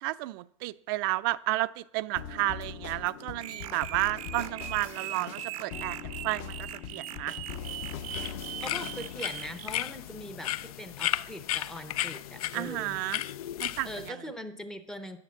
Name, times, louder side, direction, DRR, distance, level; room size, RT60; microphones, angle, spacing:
voice 1, 0.0-7.4 12.5-13.2 13.6-14.2, right 19 dB, 40° right, 0.4 m, -32 dB
sound 1, 2.2-9.3, left 7 dB, 40° left, 0.7 m, -42 dB
sound 2, 3.4-9.7, right 13 dB, 85° right, 0.7 m, -41 dB
sound 3, 7.5-14.1, left 13 dB, 90° left, 0.5 m, -35 dB
voice 2, 8.6-13.0 13.8-15.2, equal, 5° left, 0.6 m, -41 dB
11.0 x 6.6 x 7.2 m
supercardioid pair, 170°, 18 cm